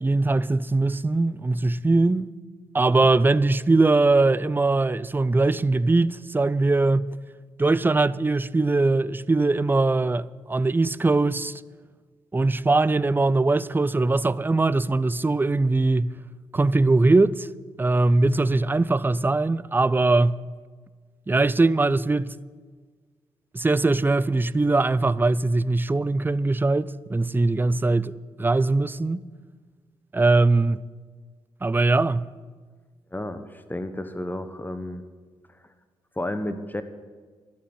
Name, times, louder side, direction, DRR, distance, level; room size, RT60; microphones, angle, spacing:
voice 1, 0.0-2.4 2.7-7.1 7.6-11.6 12.3-16.2 16.5-17.5 17.8-20.4 21.3-22.3 23.5-29.2 30.1-30.8 31.6-32.3, right 3 dB, 15° right, 0.5 m, -21 dB
voice 2, 33.1-35.0 36.2-36.8, left 1 dB, 15° left, 1.2 m, -32 dB
12.0 x 8.6 x 9.3 m
hypercardioid pair, 40°, 12 cm